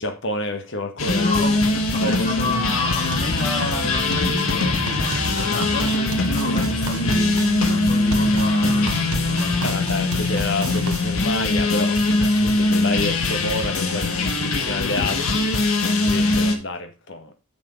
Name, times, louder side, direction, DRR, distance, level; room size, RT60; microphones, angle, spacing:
voice 1, 0.0-1.4 2.0-2.3 6.5-6.6 9.6-15.5 16.0-17.3, left 2 dB, 55° left, 1.5 m, -29 dB
sound 1, 1.0-16.6, left 2 dB, 80° left, 1.9 m, -22 dB
voice 2, 1.0-9.7, left 1 dB, 40° left, 2.6 m, -30 dB
sound 2, 3.1-11.1, right 2 dB, 80° right, 1.2 m, -30 dB
7.3 x 6.9 x 5.2 m
head